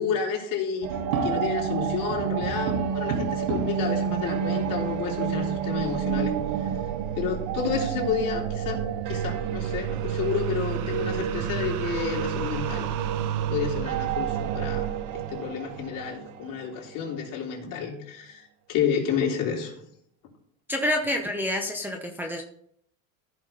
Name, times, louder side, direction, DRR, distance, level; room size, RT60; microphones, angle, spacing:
voice 1, 0.0-6.7 7.2-12.9 13.5-18.4 18.7-19.7, left 7 dB, 50° left, -2 dB, 3.5 m, -30 dB
sound 1, 0.8-17.1, right 9 dB, 45° right, 0.9 m, -29 dB
sound 2, 0.9-1.8 2.1-3.9 4.6-4.7 4.9-5.0 5.7-6.6 8.4-8.5 9.0-9.5 9.9-10.0 10.5-11.4, right 4 dB, 85° right, 3.2 m, -34 dB
voice 2, 20.7-22.4, left 1 dB, 5° right, 0 dB, 0.9 m, -28 dB
15.0 x 5.9 x 3.9 m, 0.68 s
supercardioid pair, 135°, 41 cm